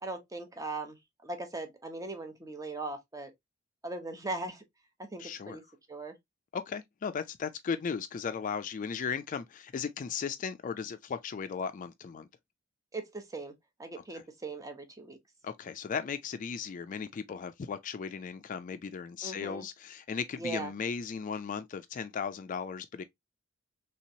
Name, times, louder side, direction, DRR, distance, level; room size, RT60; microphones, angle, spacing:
voice 1, 0.0-3.3 3.8-4.6 5.0-5.6 5.9-6.1 12.9-13.5 13.8-15.2 19.2-19.7 20.4-20.7, right 2 dB, 15° right, 0.7 m, -39 dB
voice 2, 5.2-5.6 6.5-12.3 14.0-14.2 15.4-23.0, left 6 dB, 40° left, 0.3 m, -36 dB
3.3 x 2.9 x 2.7 m
head